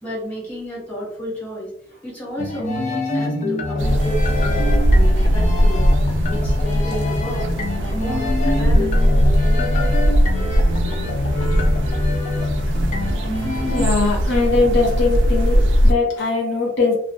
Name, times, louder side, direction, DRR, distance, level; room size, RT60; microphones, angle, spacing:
voice 1, 0.0-5.9 6.2-9.9, equal, 10° left, -7 dB, 1.3 m, -32 dB
sound 1, 2.4-13.9, left 2 dB, 40° left, 0.3 m, -25 dB
sound 2, 3.8-15.9, equal, 75° right, 0.4 m, -19 dB
voice 2, 13.7-16.9, left 3 dB, 75° left, -3 dB, 0.8 m, -20 dB
2.5 x 2.3 x 2.2 m, 0.64 s
head